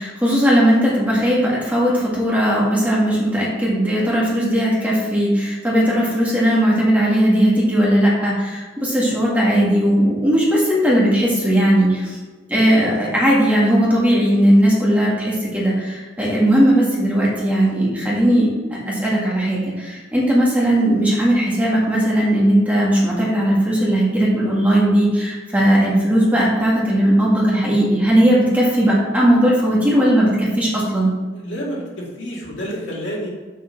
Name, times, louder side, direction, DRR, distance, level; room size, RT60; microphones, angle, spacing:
voice 1, 0.0-12.2 12.5-18.5 18.9-31.1, equal, 10° right, -5 dB, 1.9 m, -17 dB
voice 2, 31.3-33.3, equal, 75° left, -4 dB, 2.4 m, -29 dB
6.6 x 5.4 x 5.8 m, 1.3 s
head